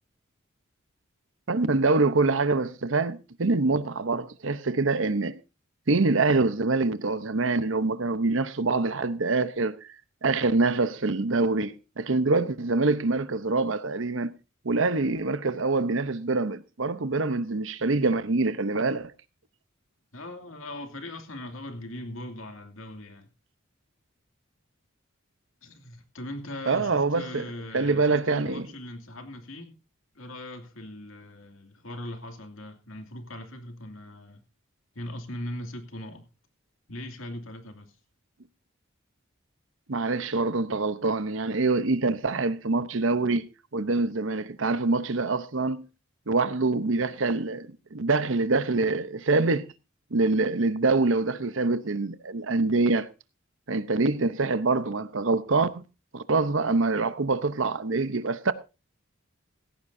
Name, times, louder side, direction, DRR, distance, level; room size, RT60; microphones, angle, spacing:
voice 1, 1.5-5.4 5.9-9.9 10.2-14.3 14.6-19.1 26.7-27.5 27.7-28.7 39.9-43.5 43.7-45.9 46.3-49.7 50.1-53.1 53.7-55.8 56.1-58.5, right 3 dB, 75° right, 0.9 m, -25 dB
voice 2, 20.1-23.3 25.6-29.8 30.1-34.4 34.9-36.3 36.9-37.9, left 1 dB, 85° left, 2.5 m, -40 dB
16.5 x 15.0 x 2.7 m
head